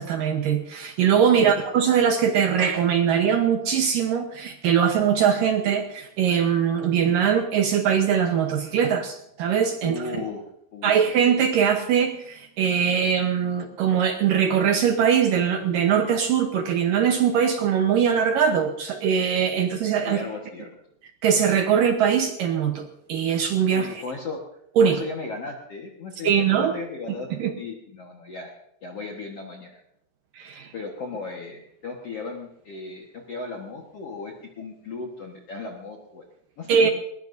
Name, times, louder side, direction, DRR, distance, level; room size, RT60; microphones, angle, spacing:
voice 1, 0.0-10.0 10.8-20.2 21.2-24.0 24.8-25.0 26.2-26.7 27.3-27.5 30.4-30.7 36.7-36.9, right 7 dB, 70° right, 5 dB, 2.2 m, -21 dB
voice 2, 9.8-10.4 10.7-11.0 20.1-20.7 23.7-24.4 24.8-27.3 27.6-28.5 28.8-29.8 30.7-36.2 36.6-36.9, left 4 dB, 60° left, 0 dB, 1.6 m, -36 dB
20.5 x 20.5 x 2.7 m, 0.74 s
omnidirectional pair, 4.9 m